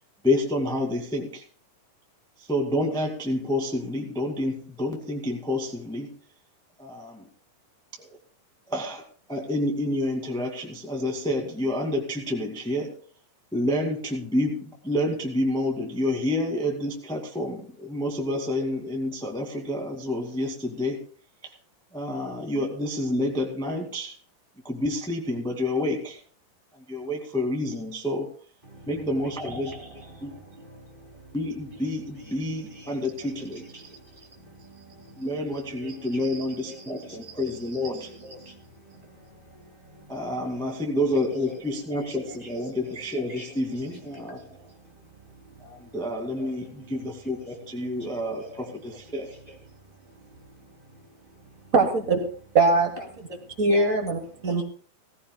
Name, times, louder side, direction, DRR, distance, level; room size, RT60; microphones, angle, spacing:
voice 1, 0.2-1.4 2.5-6.1 6.8-7.3 8.0-8.2 8.7-9.0 9.3-12.9 13.5-21.0 21.4-21.5 21.9-24.1 24.6-26.2 26.9-28.3 28.9-29.9 30.2-30.3 31.3-33.9 35.2-38.1 40.1-44.5 45.6-49.3, left 1 dB, ahead, 1 dB, 1.3 m, -29 dB
voice 2, 29.2-31.4 31.7-35.4 35.7-41.0 41.3-46.0 46.3-48.8 49.1-51.7 53.0-54.0 54.3-54.6, right 1 dB, 15° right, 0 dB, 2.7 m, -47 dB
voice 3, 51.7-52.2 52.5-52.9 53.6-54.6, right 3 dB, 70° right, 3 dB, 0.8 m, -21 dB
18.5 x 16.0 x 2.3 m, 0.43 s
omnidirectional pair, 4.0 m